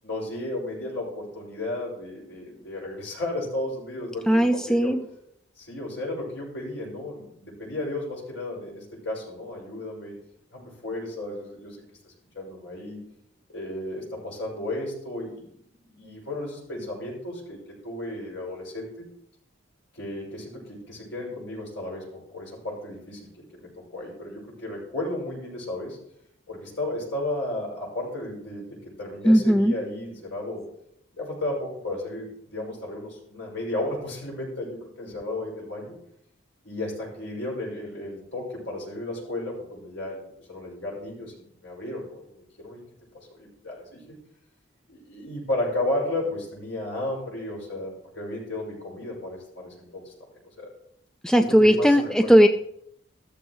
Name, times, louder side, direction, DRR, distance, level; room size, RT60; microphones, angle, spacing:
voice 1, 0.0-4.9 5.6-10.1 10.5-13.0 13.5-15.5 15.9-17.6 17.8-19.0 19.9-26.0 26.5-30.6 31.1-35.9 36.6-42.8 43.1-44.2 44.9-50.1 50.6-50.7 51.4-52.4, left 1 dB, 65° left, -3 dB, 6.2 m, -34 dB
voice 2, 4.3-5.0 29.2-29.7 51.2-52.5, equal, 5° left, 7 dB, 0.3 m, -18 dB
14.0 x 13.5 x 3.2 m, 0.72 s
head